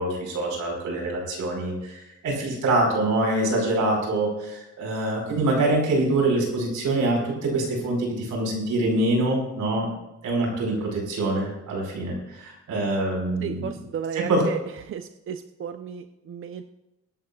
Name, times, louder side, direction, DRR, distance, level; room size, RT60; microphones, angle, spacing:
voice 1, 0.0-9.9 10.2-13.8 14.1-14.4, right 2 dB, 75° right, 0 dB, 5.1 m, -25 dB
voice 2, 13.4-14.6 14.9-16.6, right 8 dB, 45° right, 8 dB, 0.7 m, -33 dB
22.5 x 11.5 x 2.4 m, 0.96 s
cardioid pair, 90°, 30 cm